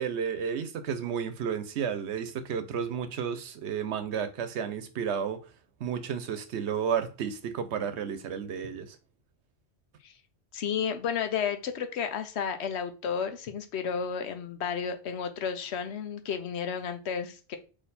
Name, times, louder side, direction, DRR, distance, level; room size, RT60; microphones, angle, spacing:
voice 1, 0.0-5.4 5.8-9.0, right 7 dB, 80° right, 1.0 m, -32 dB
voice 2, 10.5-17.6, left 7 dB, 75° left, 1.0 m, -32 dB
4.3 x 3.0 x 4.0 m
omnidirectional pair, 1.1 m